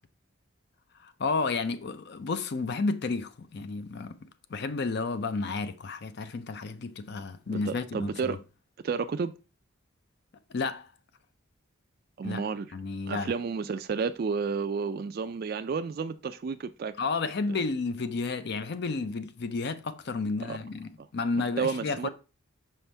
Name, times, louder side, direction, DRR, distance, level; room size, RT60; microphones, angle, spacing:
voice 1, 1.0-4.2 4.5-8.4 10.5-10.9 12.2-12.4 12.7-13.3 17.0-22.1, left 4 dB, 50° left, 0.5 m, -32 dB
voice 2, 7.5-8.4 8.8-9.3 12.2-12.7 13.1-16.9 17.5-17.6 20.5-20.6 21.4-22.1, right 5 dB, 45° right, 0.3 m, -31 dB
5.6 x 5.2 x 3.3 m
head